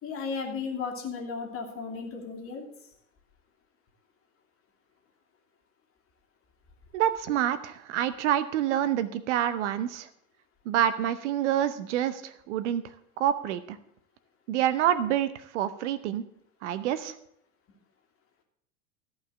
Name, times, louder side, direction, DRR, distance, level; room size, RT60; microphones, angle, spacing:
voice 1, 0.0-2.6, left 5 dB, 35° left, 3 dB, 2.7 m, -34 dB
voice 2, 6.9-10.1 10.7-12.8 13.2-13.8 14.5-16.2 16.6-17.2, right 11 dB, 60° right, 14 dB, 0.9 m, -27 dB
14.0 x 5.7 x 7.8 m, 0.71 s
figure-of-eight pair, 85°, 40 cm